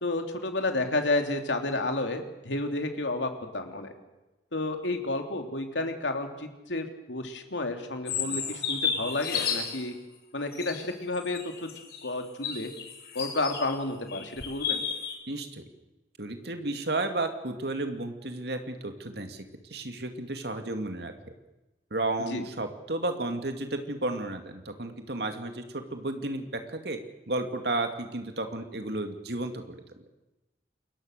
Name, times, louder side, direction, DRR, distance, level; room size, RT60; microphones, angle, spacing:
voice 1, 0.0-3.9 4.5-9.9 10.3-11.7 12.0-12.7 13.1-14.8 22.3-22.4, left 2 dB, 90° left, 5 dB, 3.2 m, -31 dB
sound 1, 8.1-9.8 10.5-13.7 14.1-15.1, left 6 dB, 60° left, 4.9 m, -32 dB
voice 2, 15.3-15.7 16.2-19.4 19.7-21.1 21.9-27.0 27.3-29.8, right 2 dB, 65° right, 6 dB, 2.4 m, -33 dB
28.0 x 22.5 x 6.7 m, 1.0 s
head